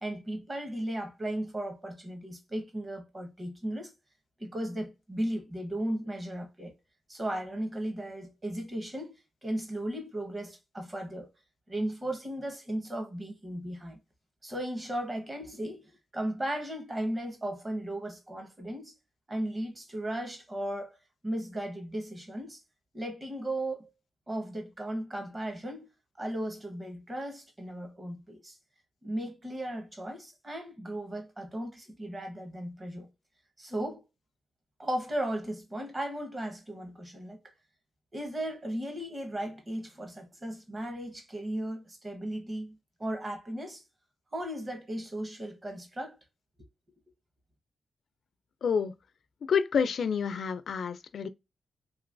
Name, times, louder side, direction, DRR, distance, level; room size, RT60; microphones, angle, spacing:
voice 1, 0.0-3.9 4.4-6.7 7.1-11.3 11.7-14.0 14.4-18.9 19.3-21.0 21.2-22.6 22.9-23.9 24.3-25.9 26.2-28.6 29.0-33.1 33.6-34.0 34.8-37.4 38.1-43.8 44.3-46.2, right 1 dB, 25° right, 1.0 m, -36 dB
voice 2, 48.6-48.9 49.5-51.3, left 6 dB, 65° left, 0.3 m, -28 dB
3.0 x 2.9 x 2.4 m
wide cardioid pair, 105°, 0 cm